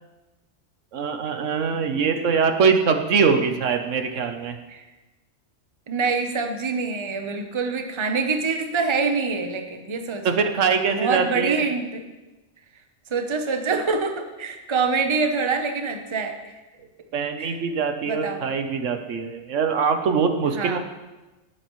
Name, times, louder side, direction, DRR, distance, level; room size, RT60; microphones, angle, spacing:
voice 1, 0.9-4.5 10.2-11.7 17.1-20.8, right 5 dB, 75° right, 6 dB, 1.2 m, -23 dB
voice 2, 5.9-10.5 10.9-12.0 13.1-16.4 17.4-17.6 18.1-18.4 20.5-20.8, right 4 dB, 25° right, 5 dB, 0.8 m, -25 dB
18.0 x 8.7 x 3.1 m, 1.1 s
omnidirectional pair, 1.3 m